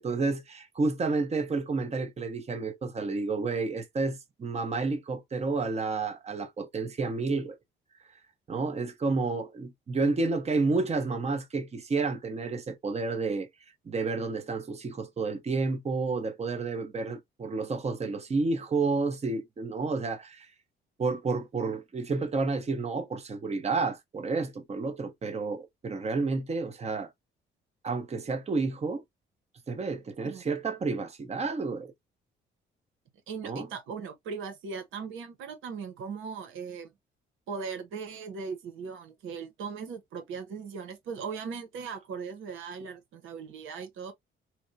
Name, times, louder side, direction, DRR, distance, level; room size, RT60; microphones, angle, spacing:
voice 1, 0.0-7.6 8.5-13.5 13.9-20.5 21.0-27.1 27.8-29.0 29.7-31.9 33.4-33.7, right 3 dB, 35° right, 0.9 m, -30 dB
voice 2, 33.3-36.9 37.5-44.1, right 5 dB, 85° right, 1.1 m, -38 dB
4.3 x 2.2 x 2.7 m
cardioid pair, 90°, 20 cm